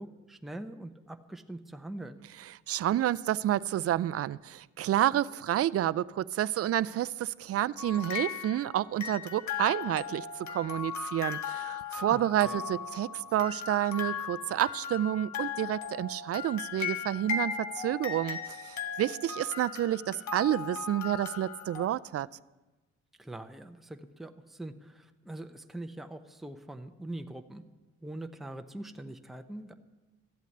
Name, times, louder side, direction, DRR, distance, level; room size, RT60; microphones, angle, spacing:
voice 1, 0.0-2.2 12.1-12.6 23.2-27.6 28.0-29.7, right 1 dB, ahead, 6 dB, 0.8 m, -43 dB
voice 2, 2.7-22.3, right 12 dB, 50° right, 19 dB, 0.4 m, -29 dB
sound 1, 7.8-21.9, left 7 dB, 70° left, 1.5 m, -37 dB
14.0 x 8.3 x 7.9 m, 1.1 s
cardioid pair, 90°, 30 cm